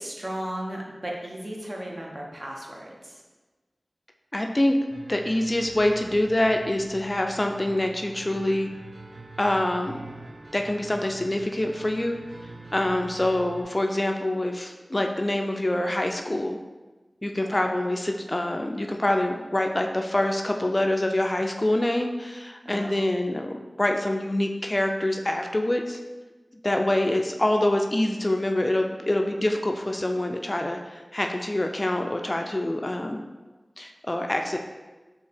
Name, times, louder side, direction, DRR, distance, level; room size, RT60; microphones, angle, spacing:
voice 1, 0.0-3.2 17.5-17.6 22.6-22.9, right 1 dB, 40° right, -2 dB, 0.8 m, -35 dB
voice 2, 4.3-4.8 5.1-8.7 9.4-10.0 10.5-12.2 12.7-16.6 17.2-26.0 26.6-33.2 33.8-34.6, left 1 dB, 30° left, 3 dB, 0.3 m, -25 dB
sound 1, 4.9-13.6, right 2 dB, 60° right, 0.4 m, -44 dB
4.4 x 2.8 x 3.4 m, 1.2 s
wide cardioid pair, 55°, 0 cm